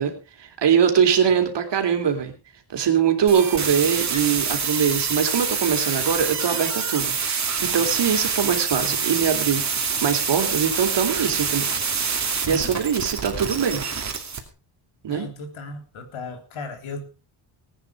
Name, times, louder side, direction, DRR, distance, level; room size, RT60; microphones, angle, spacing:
voice 1, 0.0-2.3 2.7-9.6 10.0-11.7 12.0-13.8 15.0-15.3, right 7 dB, 60° right, 3.4 m, -22 dB
sound 1, 3.3-14.4, right 6 dB, 35° right, 2.6 m, -26 dB
voice 2, 15.1-17.0, left 2 dB, 80° left, 3.6 m, -35 dB
19.5 x 9.6 x 4.8 m
wide cardioid pair, 150°, 47 cm